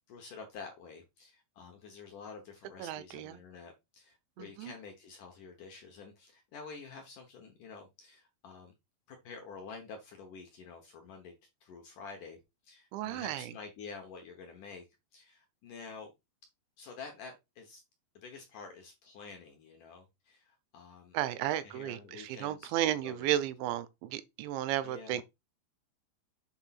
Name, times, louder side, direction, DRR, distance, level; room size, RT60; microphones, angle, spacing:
voice 1, 0.1-8.7 9.1-11.3 11.6-14.9 15.1-16.1 16.8-17.8 18.1-21.2 21.6-23.8 24.8-25.2, left 5 dB, 65° left, 2.1 m, -49 dB
voice 2, 2.8-3.4 4.4-4.7 12.9-13.5 21.1-25.2, right 12 dB, 85° right, 3.0 m, -34 dB
8.1 x 3.4 x 5.8 m
omnidirectional pair, 5.2 m